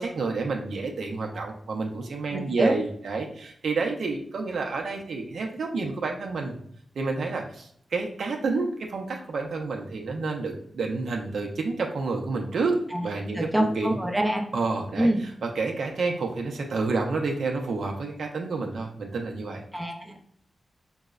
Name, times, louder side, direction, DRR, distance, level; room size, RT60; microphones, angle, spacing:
voice 1, 0.0-6.6 7.0-14.0 14.5-19.6, right 3 dB, 65° right, 1 dB, 0.5 m, -29 dB
voice 2, 2.3-2.7 12.9-13.1 13.3-14.4 15.0-15.2 19.7-20.2, right 1 dB, 10° right, 1 dB, 0.4 m, -25 dB
5.2 x 2.0 x 2.3 m, 0.67 s
wide cardioid pair, 175°, 0 cm